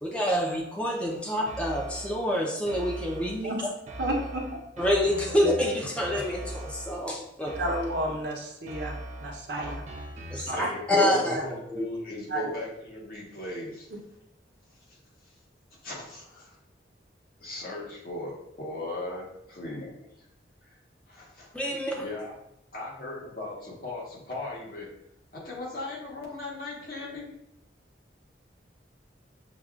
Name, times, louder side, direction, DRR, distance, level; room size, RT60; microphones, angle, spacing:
voice 1, 0.0-3.5 4.8-7.5 10.3-11.8 21.5-22.0, equal, 5° left, -1 dB, 0.5 m, -27 dB
sound 1, 1.5-2.3 2.7-3.5 3.9-7.1 7.5-8.3 8.7-10.9, right 1 dB, 40° right, 0.5 m, -40 dB
voice 2, 4.0-4.6 7.5-9.8 10.3-10.7 12.3-12.5, right 1 dB, 70° right, 0 dB, 0.8 m, -32 dB
voice 3, 10.5-13.9 14.9-15.0 15.8-16.6 17.4-20.3 20.7-20.8 21.1-21.5 21.9-22.3 22.7-24.9 25.3-27.3, left 2 dB, 50° left, -4 dB, 1.1 m, -38 dB
6.2 x 2.3 x 2.4 m, 0.80 s
head